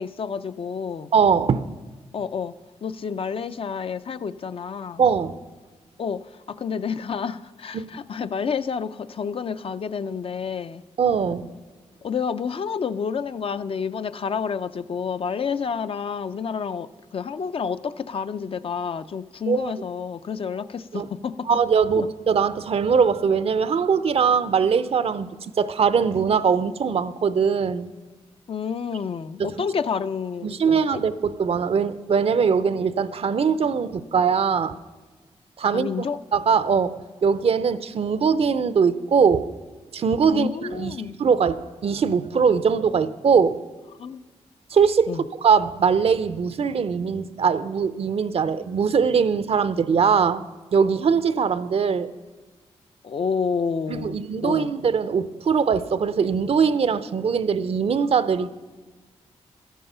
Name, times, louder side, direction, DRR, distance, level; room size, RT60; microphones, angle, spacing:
voice 1, 0.0-1.1 2.1-2.6 2.8-5.1 6.0-10.8 12.0-21.5 22.0-22.1 28.5-31.0 35.7-36.2 40.3-41.2 44.0-44.2 45.1-45.3 53.0-54.2 54.4-54.7, left 6 dB, 55° left, 0.5 m, -29 dB
voice 2, 1.1-1.7 5.0-5.4 7.7-7.9 11.0-11.5 19.5-19.7 20.9-21.1 21.5-25.3 25.6-27.9 29.4-29.5 30.4-34.8 35.6-39.5 39.9-40.9 41.2-43.6 44.7-45.1 45.4-50.5 50.7-52.1 53.9-58.5, right 6 dB, 60° right, 0.6 m, -21 dB
13.0 x 11.0 x 5.5 m
cardioid pair, 70°, 12 cm